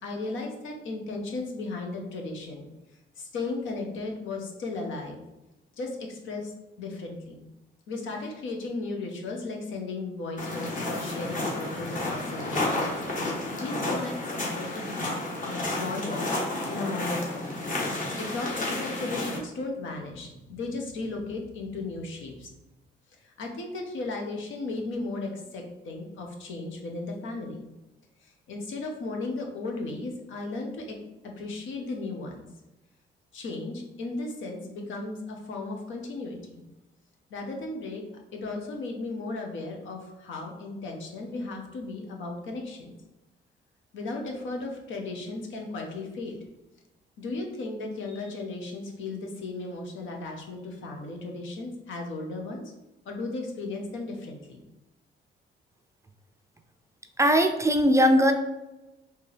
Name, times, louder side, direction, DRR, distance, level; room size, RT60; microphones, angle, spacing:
voice 1, 0.0-2.7 3.2-5.2 5.8-6.5 6.8-7.5 7.9-15.1 15.4-16.3 16.6-22.5 23.2-27.7 28.2-31.0 31.4-32.5 33.3-36.7 37.3-38.0 38.3-42.9 43.9-46.4 47.2-52.7 53.0-54.6, left 3 dB, 75° left, 2 dB, 0.9 m, -35 dB
sound 1, 10.4-19.4, left 2 dB, 40° left, 1.2 m, -31 dB
voice 2, 57.2-58.3, equal, 15° right, 5 dB, 0.4 m, -19 dB
4.5 x 2.8 x 3.3 m, 0.99 s
cardioid pair, 90°, 20 cm